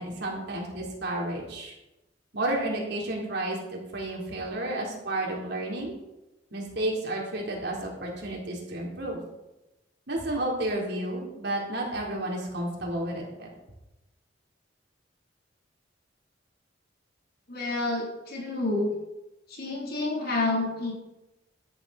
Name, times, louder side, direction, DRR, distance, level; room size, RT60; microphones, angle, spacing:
voice 1, 0.0-1.7 2.3-5.9 6.5-9.2 10.1-13.5, right 1 dB, 60° right, -2 dB, 3.8 m, -31 dB
voice 2, 17.5-18.9 19.5-20.9, left 2 dB, 55° left, -1 dB, 3.6 m, -29 dB
15.0 x 10.0 x 4.3 m, 0.97 s
head